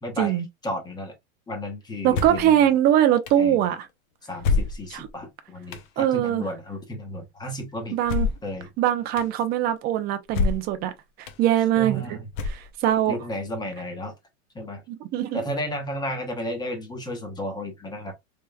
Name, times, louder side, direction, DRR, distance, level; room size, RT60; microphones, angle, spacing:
voice 1, 0.0-1.1 1.5-2.7 3.4-3.7 4.2-8.0 8.4-8.7 11.8-12.2 13.1-14.1 14.5-14.8 15.3-18.1, equal, 10° left, 1.0 m, -33 dB
voice 2, 2.0-3.8 4.9-5.1 6.0-6.4 7.9-8.3 8.8-10.9 11.2-12.2 12.5-13.2 14.9-15.4, right 11 dB, 25° right, 0.5 m, -22 dB
sound 1, 2.1-2.5 3.3-3.4 4.4-5.1 5.7-5.9 8.0-8.5 9.2-9.3 10.3-10.8 11.3-11.4 12.3-12.9, left 4 dB, 45° left, 0.7 m, -26 dB
3.4 x 3.0 x 2.3 m
hypercardioid pair, 135°, 41 cm